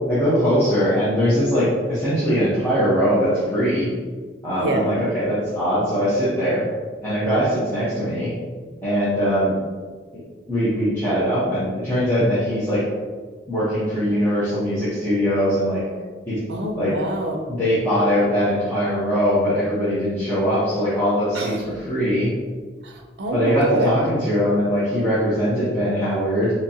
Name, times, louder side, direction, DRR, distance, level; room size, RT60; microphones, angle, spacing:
voice 1, 0.1-3.9 4.4-6.6 7.0-8.3 8.8-9.5 10.1-10.2 10.5-12.8 13.5-15.8 16.3-16.4 16.8-16.9 17.6-22.3 23.3-26.5, equal, 15° left, -13 dB, 0.9 m, -21 dB
voice 2, 4.6-4.9 16.5-17.6 21.3-21.6 22.8-23.9, right 1 dB, 65° right, 3 dB, 0.5 m, -26 dB
4.0 x 2.9 x 2.7 m, 1.5 s
head